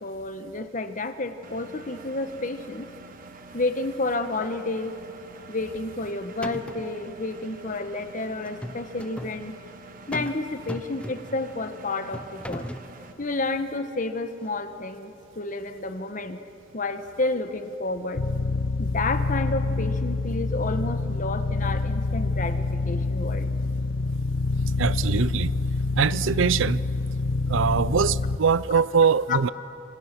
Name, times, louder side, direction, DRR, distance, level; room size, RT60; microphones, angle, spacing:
voice 1, 0.0-2.9 3.5-5.0 5.5-9.6 10.1-12.7 13.2-16.4 16.7-18.2 18.8-23.5 29.3-29.4, left 2 dB, 40° left, 9 dB, 1.3 m, -30 dB
Engine, 1.4-13.1, right 3 dB, 45° right, 1.5 m, -46 dB
sound 1, 5.7-6.1 6.4-7.0 8.4-9.4 10.1-10.4 10.7-11.4 12.1-12.9, equal, 5° left, 0.7 m, -37 dB
sound 2, 18.2-28.4, left 3 dB, 65° left, 0.7 m, -26 dB
voice 2, 24.8-25.5 26.0-26.8 27.5-29.5, right 6 dB, 80° right, 19 dB, 0.5 m, -22 dB
28.0 x 26.0 x 6.1 m, 2.7 s
head